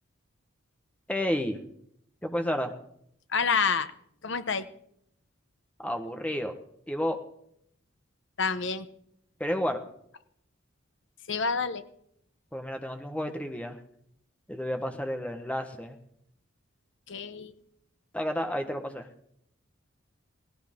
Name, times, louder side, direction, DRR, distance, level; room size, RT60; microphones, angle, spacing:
voice 1, 1.1-1.6 2.2-2.7 5.8-6.5 6.9-7.2 9.4-9.8 12.5-13.8 14.5-16.0 18.1-19.1, equal, 5° left, 6 dB, 1.3 m, -31 dB
voice 2, 3.3-3.9 4.2-4.6 8.4-8.9 11.3-11.8 17.1-17.5, left 5 dB, 60° left, 11 dB, 1.0 m, -28 dB
17.5 x 17.5 x 3.8 m, 0.70 s
head